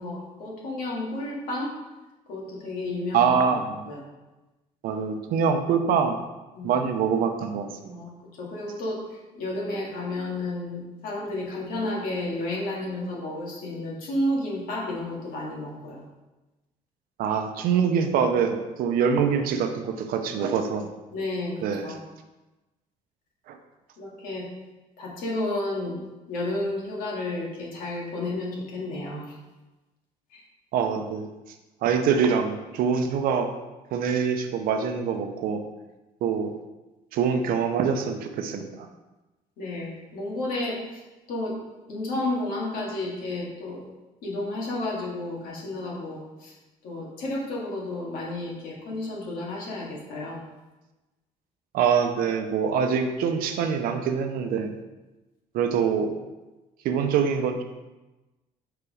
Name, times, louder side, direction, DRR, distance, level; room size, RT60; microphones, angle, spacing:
voice 1, 0.0-1.7 2.3-3.6 3.8-4.0 6.5-6.7 7.9-16.0 21.1-21.6 21.8-22.0 24.0-24.5 25.0-26.0 26.3-29.4 30.3-30.4 39.6-41.0 41.3-41.6 41.9-43.9 44.2-46.5 46.8-50.4, left 2 dB, 80° left, -3 dB, 2.1 m, -32 dB
voice 2, 3.1-3.8 4.8-6.2 6.6-8.0 17.2-20.9 21.6-21.8 23.5-23.6 30.7-31.2 31.8-33.5 33.9-35.6 36.2-36.5 37.1-38.9 51.7-54.7 55.5-56.2 56.8-57.6, right 6 dB, 80° right, 6 dB, 0.8 m, -24 dB
5.9 x 4.9 x 4.9 m, 1.1 s
cardioid pair, 145°, 15 cm